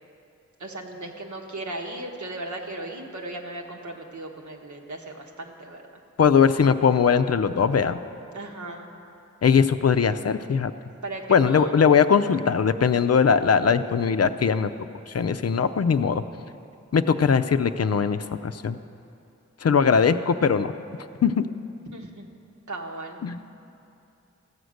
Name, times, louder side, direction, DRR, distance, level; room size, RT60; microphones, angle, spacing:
voice 1, 0.6-5.8 8.3-8.9 11.0-11.7 21.9-22.3 22.7-23.2, right 2 dB, 75° right, 0 dB, 1.3 m, -36 dB
voice 2, 6.2-8.0 9.4-10.7 11.3-14.7 15.1-16.2 16.9-18.8 19.6-20.7 21.2-21.4 23.2-23.4, left 6 dB, 55° left, 10 dB, 0.5 m, -20 dB
14.5 x 8.0 x 6.4 m, 2.7 s
wide cardioid pair, 55°, 29 cm